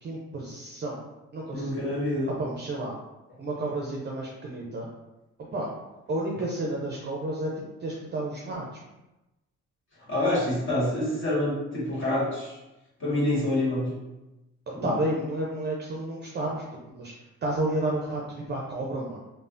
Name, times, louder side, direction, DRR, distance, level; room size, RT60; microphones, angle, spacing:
voice 1, 0.0-1.0 1.3-2.0 2.2-2.9 3.4-4.9 5.5-5.7 6.1-7.5 7.8-8.6 14.7-16.6 16.9-17.1 17.4-19.2, right 1 dB, 35° right, -3 dB, 0.5 m, -31 dB
voice 2, 1.5-2.3 10.1-12.6 13.0-13.9 14.7-14.9, left 1 dB, 40° left, -6 dB, 1.5 m, -27 dB
3.2 x 2.0 x 2.5 m, 0.99 s
cardioid pair, 90°, 30 cm